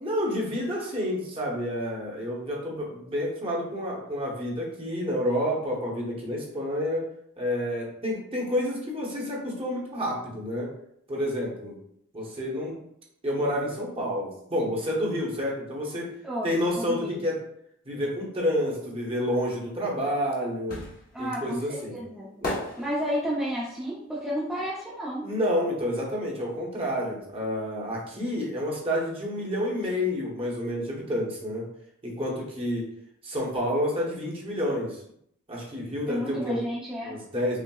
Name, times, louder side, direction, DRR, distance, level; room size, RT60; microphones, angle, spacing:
voice 1, 0.0-7.0 7.4-10.7 11.1-11.8 12.1-12.8 13.2-16.1 16.4-17.4 17.8-20.8 21.2-22.0 22.4-22.7 25.2-31.6 32.0-32.9 33.2-35.0 35.5-36.6 37.0-37.6, equal, 25° right, -3 dB, 0.8 m, -29 dB
voice 2, 16.2-17.2 21.1-22.3 22.8-25.3 36.1-37.1, equal, 5° right, -8 dB, 0.5 m, -31 dB
sound 1, 19.8-25.7 25.9-27.5 27.8-27.9, left 1 dB, 40° left, 1.0 m, -38 dB
5.7 x 2.0 x 2.3 m, 0.72 s
head